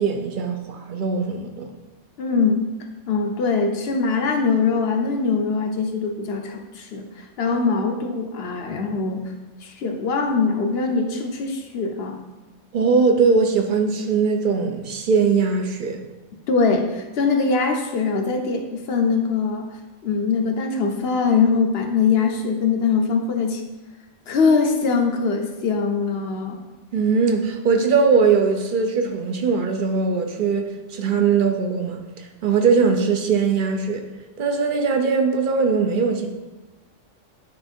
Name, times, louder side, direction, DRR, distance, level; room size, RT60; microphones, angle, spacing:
voice 1, 0.0-1.7 12.7-16.0 26.9-34.0 34.4-36.3, right 5 dB, 50° right, 5 dB, 0.8 m, -20 dB
voice 2, 2.2-2.7 3.1-9.3 9.6-12.2 16.5-19.7 20.0-23.6 24.3-26.6, left 4 dB, 60° left, 4 dB, 1.0 m, -22 dB
9.5 x 3.3 x 4.4 m, 1.2 s
omnidirectional pair, 1.3 m